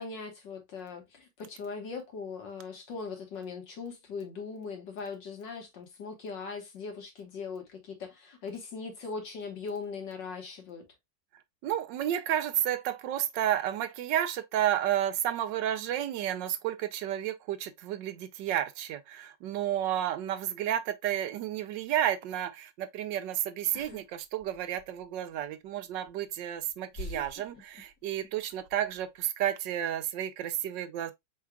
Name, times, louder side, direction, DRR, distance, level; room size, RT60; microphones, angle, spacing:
voice 1, 0.0-10.9, left 4 dB, 75° left, 2.2 m, -40 dB
voice 2, 11.6-31.1, right 11 dB, 80° right, 1.3 m, -31 dB
sound 1, 23.7-24.0 24.4-25.0 26.1-26.2 26.9-28.3 28.6-29.0, left 2 dB, 50° left, 2.2 m, -43 dB
4.7 x 4.6 x 2.3 m
omnidirectional pair, 1.9 m